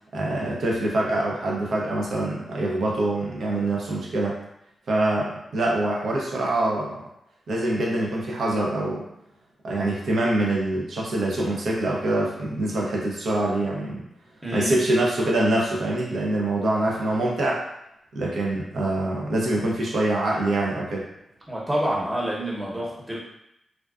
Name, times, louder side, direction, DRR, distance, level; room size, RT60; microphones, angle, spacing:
voice 1, 0.1-4.3 4.9-7.0 7.5-9.1 9.6-14.0 14.5-17.6 18.1-21.1, right 1 dB, 75° right, -3 dB, 0.6 m, -25 dB
voice 2, 14.4-14.8 21.5-23.2, equal, 20° right, -4 dB, 0.9 m, -27 dB
2.4 x 2.2 x 2.3 m, 0.81 s
supercardioid pair, 45°, 0 cm